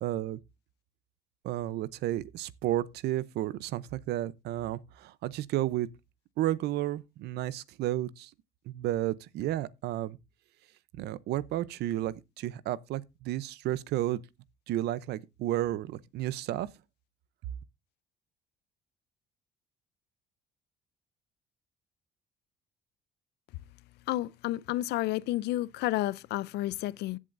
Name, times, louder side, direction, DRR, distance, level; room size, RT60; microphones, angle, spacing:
voice 1, 0.0-0.4 1.4-5.9 6.4-8.3 8.7-10.2 11.0-14.2 14.7-16.7, right 14 dB, 75° right, 0.7 m, -32 dB
voice 2, 24.1-27.2, left 16 dB, 80° left, 0.5 m, -31 dB
16.0 x 7.4 x 2.6 m
cardioid pair, 110°, 17 cm